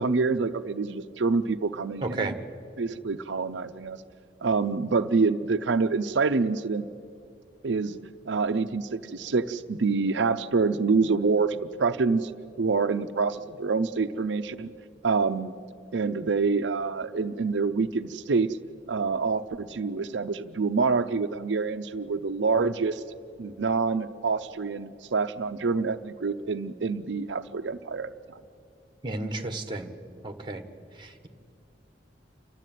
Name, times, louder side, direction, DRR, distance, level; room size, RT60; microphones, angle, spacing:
voice 1, 0.0-2.3 2.8-4.0 4.4-6.9 7.6-8.0 8.3-12.3 12.6-14.7 15.0-15.5 15.9-18.6 18.9-23.0 23.4-28.4, right 4 dB, 85° right, 8 dB, 0.6 m, -26 dB
voice 2, 2.0-2.4 29.0-29.9 30.2-30.6 30.9-31.3, right 2 dB, 25° right, 6 dB, 1.5 m, -32 dB
29.0 x 12.5 x 9.1 m, 2.4 s
head